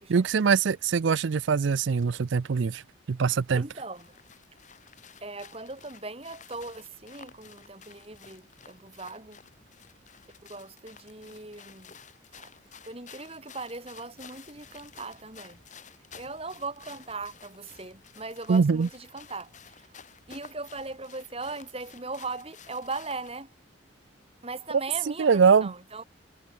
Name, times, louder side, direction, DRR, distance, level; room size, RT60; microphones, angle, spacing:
voice 1, 0.1-2.8 3.1-3.6 18.5-18.9 25.2-25.7, right 5 dB, 65° right, 0.4 m, -22 dB
voice 2, 3.6-4.2 5.2-9.4 10.5-12.0 12.3-12.5 12.8-15.6 16.2-19.9 20.3-23.5 24.4-26.0, right 3 dB, 30° right, 3.6 m, -39 dB
sound 1, 3.9-23.4, left 6 dB, 35° left, 3.4 m, -52 dB
head